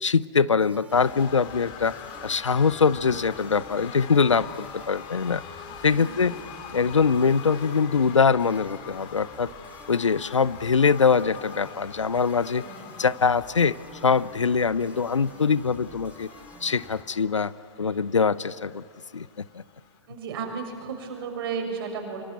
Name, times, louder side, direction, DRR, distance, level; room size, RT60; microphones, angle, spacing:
voice 1, 0.0-1.9 2.2-5.4 5.8-6.3 6.7-9.5 9.9-12.6 13.0-13.7 14.0-16.3 16.6-17.5 17.8-18.8 19.1-19.6, left 5 dB, 80° left, 19 dB, 0.7 m, -23 dB
sound 1, 0.6-17.0, right 3 dB, 10° right, 2.3 m, -51 dB
sound 2, 0.9-20.0, left 8 dB, 30° left, 2.7 m, -43 dB
voice 2, 5.7-6.6 12.6-12.9 17.8-18.2 20.1-22.2, right 5 dB, 50° right, 3 dB, 6.6 m, -35 dB
24.5 x 24.5 x 9.5 m, 2.3 s
figure-of-eight pair, 110°, 15 cm